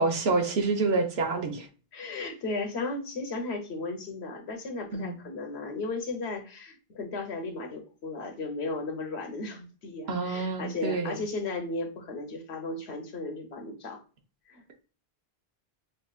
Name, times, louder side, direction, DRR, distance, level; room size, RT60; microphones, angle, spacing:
voice 1, 0.0-1.7 4.9-5.2 10.1-11.2, right 3 dB, 75° right, 5 dB, 1.1 m, -27 dB
voice 2, 1.9-14.0 14.5-14.6, left 3 dB, 85° left, 4 dB, 1.2 m, -35 dB
5.7 x 2.7 x 2.4 m, 0.37 s
omnidirectional pair, 1.1 m